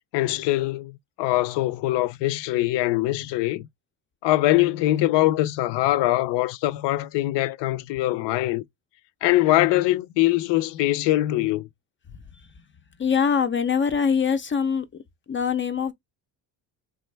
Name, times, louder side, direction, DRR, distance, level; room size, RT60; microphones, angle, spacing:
voice 1, 0.1-3.6 4.2-8.6 9.2-11.7, left 16 dB, 75° left, 0.5 m, -22 dB
voice 2, 13.0-14.9 15.3-15.9, left 6 dB, 30° left, 0.4 m, -23 dB
3.4 x 2.2 x 3.3 m
cardioid pair, 85°, 43 cm